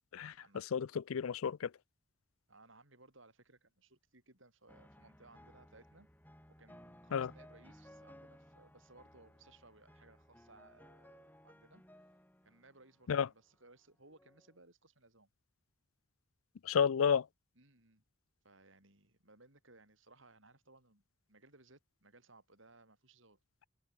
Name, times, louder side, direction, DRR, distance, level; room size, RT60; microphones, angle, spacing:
voice 1, 0.0-0.3 0.7-1.7 7.1-7.3 13.1-13.3 16.7-17.2, left 7 dB, 85° left, 0.4 m, -31 dB
voice 2, 2.5-6.1 6.6-11.8 12.4-15.3 17.5-18.0 18.4-21.0 21.3-23.4, right 2 dB, 70° right, 6.4 m, -63 dB
sound 1, 4.7-13.3 14.1-14.6, equal, 10° left, 5.8 m, -60 dB
head